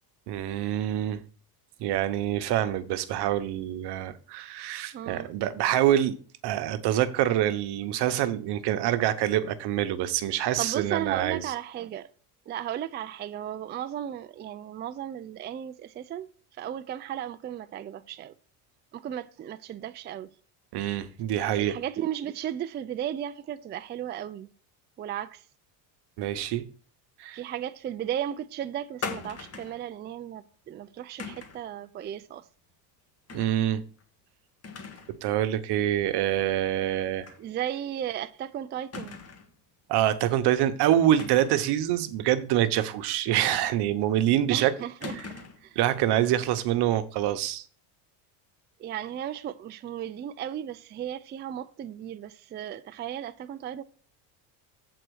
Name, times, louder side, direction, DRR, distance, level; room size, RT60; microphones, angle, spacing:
voice 1, 0.3-1.2 1.8-6.2 6.4-11.4 20.7-21.8 26.2-26.6 27.2-27.4 33.3-33.8 35.2-37.3 39.9-44.7 45.8-47.6, right 12 dB, 60° right, 1.0 m, -26 dB
voice 2, 4.9-5.3 10.6-12.1 12.5-16.3 16.6-18.3 18.9-20.3 21.6-24.5 25.0-25.4 27.3-32.5 37.4-39.2 44.5-45.2 45.6-45.8 48.8-53.8, right 10 dB, 25° right, 0.4 m, -35 dB
sound 1, 29.0-29.8 31.2-31.7 33.3-33.6 34.0-34.1 34.6-35.2 35.5-35.6 37.2-37.4 37.8-37.9 38.9-39.5 41.1-41.7 43.5-44.1 45.0-45.7, left 4 dB, 35° left, 1.6 m, -40 dB
8.0 x 4.3 x 6.3 m
cardioid pair, 115°, 45 cm